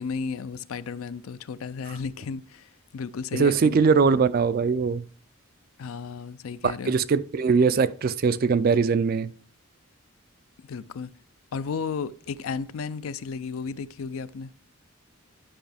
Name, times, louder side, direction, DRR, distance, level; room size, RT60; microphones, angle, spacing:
voice 1, 0.0-3.8 4.1-4.2 5.8-6.9 10.7-11.1 11.5-14.5, left 5 dB, 75° left, 0.4 m, -33 dB
voice 2, 3.3-5.0 6.9-9.3, right 5 dB, 45° right, 0.3 m, -21 dB
10.0 x 5.7 x 3.4 m
head